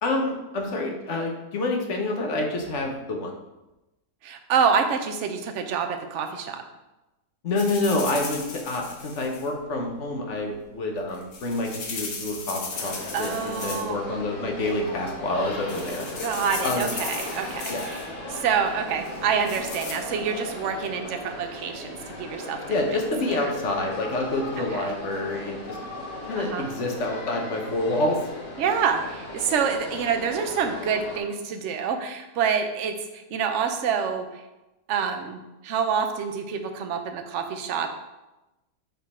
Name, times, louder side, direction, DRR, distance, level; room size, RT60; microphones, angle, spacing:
voice 1, 0.0-3.3 7.4-16.0 16.3-16.9 17.7-17.8 22.7-25.8 26.2-28.2, left 2 dB, 50° left, 2 dB, 1.1 m, -28 dB
voice 2, 4.2-6.6 13.1-14.0 16.2-18.0 18.3-22.6 24.7-24.9 26.4-26.7 28.6-34.4 34.9-37.9, right 6 dB, 60° right, 6 dB, 0.8 m, -27 dB
sound 1, 7.6-9.5 11.0-14.0 14.3-14.7 15.3-15.4 15.7-18.0 19.0-19.9, left 4 dB, 70° left, 1.7 m, -36 dB
sound 2, 12.7-31.2, left 1 dB, 90° left, 1.9 m, -37 dB
7.2 x 3.9 x 4.2 m, 1.0 s
omnidirectional pair, 1.9 m